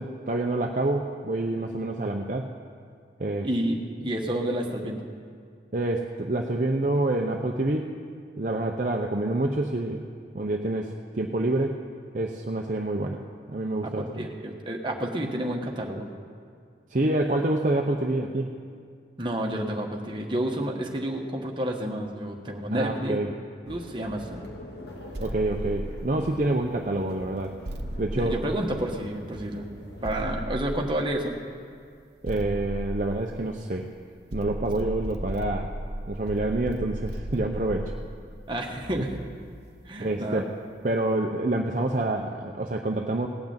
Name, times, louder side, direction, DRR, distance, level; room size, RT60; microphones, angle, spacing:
voice 1, 0.0-2.5 3.2-3.5 5.7-7.9 8.4-10.0 10.3-11.8 12.1-13.2 13.5-14.3 16.9-18.6 22.7-23.3 25.2-27.5 28.0-28.3 32.2-33.9 34.3-35.7 36.1-37.9 39.0-39.1 40.0-40.5 40.8-43.3, right 2 dB, 45° right, 1 dB, 0.7 m, -27 dB
voice 2, 3.4-5.0 13.8-16.1 19.2-23.3 23.7-24.4 28.1-29.7 30.0-31.3 38.5-39.1 39.8-40.5, right 1 dB, 25° right, 1 dB, 1.3 m, -30 dB
sound 1, 23.7-30.3, left 1 dB, 70° left, 2.0 m, -44 dB
sound 2, 25.1-26.6 27.6-29.3 30.0-31.4 32.2-33.8 34.3-39.6, right 1 dB, 65° right, 1.0 m, -36 dB
18.0 x 6.0 x 8.8 m, 2.2 s
head